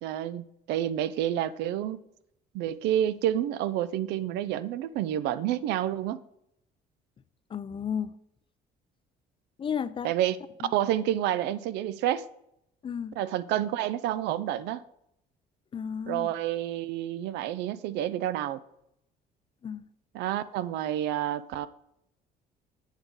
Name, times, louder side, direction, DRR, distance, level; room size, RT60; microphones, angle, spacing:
voice 1, 0.0-2.0 2.5-6.2 10.0-10.4 10.7-12.2 13.2-14.8 16.1-18.6 20.1-21.7, right 12 dB, 90° right, 0.5 m, -29 dB
voice 2, 7.5-8.1 9.6-10.1 10.6-10.7 12.8-13.2 15.7-16.3 19.6-19.8, left 7 dB, 30° left, 0.4 m, -33 dB
8.2 x 6.1 x 4.0 m
cardioid pair, 110°, 17 cm